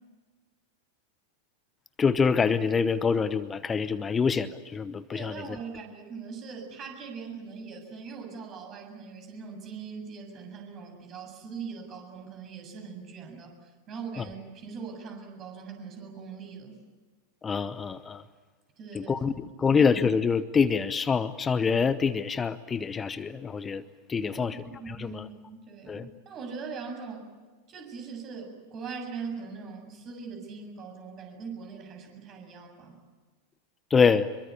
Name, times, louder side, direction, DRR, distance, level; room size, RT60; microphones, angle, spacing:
voice 1, 2.0-5.5 14.2-14.3 17.4-18.2 18.9-23.8 24.1-24.6 24.9-25.2 25.9-26.1 33.9-34.3, left 5 dB, 20° left, 15 dB, 0.9 m, -25 dB
voice 2, 5.1-16.8 18.8-19.2 19.6-19.8 24.3-27.3 27.7-33.0, right 5 dB, 30° right, 4 dB, 7.3 m, -41 dB
26.5 x 23.0 x 8.3 m, 1.4 s
figure-of-eight pair, 90°, 0 cm